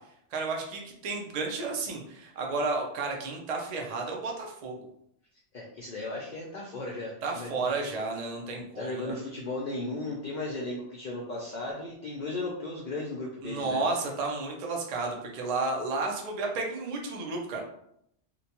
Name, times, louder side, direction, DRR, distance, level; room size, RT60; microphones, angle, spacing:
voice 1, 0.3-4.8 7.2-9.2 13.4-17.6, right 3 dB, 70° right, 1 dB, 0.3 m, -32 dB
voice 2, 5.5-7.5 8.7-13.8, left 2 dB, 65° left, -2 dB, 0.4 m, -36 dB
2.6 x 2.2 x 2.8 m, 0.73 s
omnidirectional pair, 1.3 m